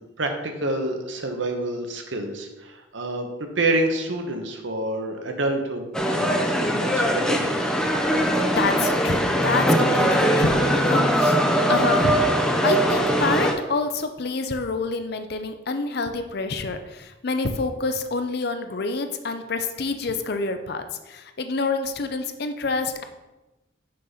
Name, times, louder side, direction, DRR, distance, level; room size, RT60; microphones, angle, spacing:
voice 1, 0.0-3.3 3.6-7.6, right 2 dB, 75° right, 4 dB, 1.0 m, -28 dB
sound 1, 5.9-13.5, equal, 5° left, 0.6 m, -21 dB
voice 2, 8.6-11.4 11.7-12.2 12.6-23.0, left 3 dB, 55° left, 8 dB, 0.6 m, -27 dB
6.4 x 4.0 x 5.6 m, 1.1 s
head